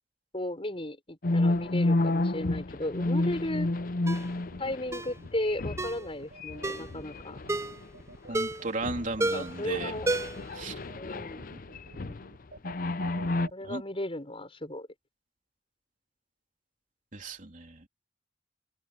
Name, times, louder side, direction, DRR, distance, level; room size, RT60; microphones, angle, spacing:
voice 1, 0.3-3.7 4.6-7.4 9.3-10.1 11.0-11.6 13.5-14.9, left 1 dB, 35° left, 6.3 m, -35 dB
sound 1, 1.2-6.1 6.4-8.0 8.3-8.5 8.8-12.3 12.6-13.5, left 2 dB, 50° left, 0.7 m, -31 dB
Ringtone, 4.1-4.3 4.9-5.1 5.8-6.0 6.6-6.9 7.5-7.8 8.3-8.7 9.2-9.6 10.1-10.5 10.8-10.9, right 2 dB, 15° right, 0.7 m, -31 dB
sound 2, 4.5-13.5, right 1 dB, 75° right, 7.5 m, -49 dB
voice 2, 8.3-10.0 10.5-10.8 13.6-13.8 17.1-17.9, right 3 dB, 45° right, 3.4 m, -35 dB
open air
head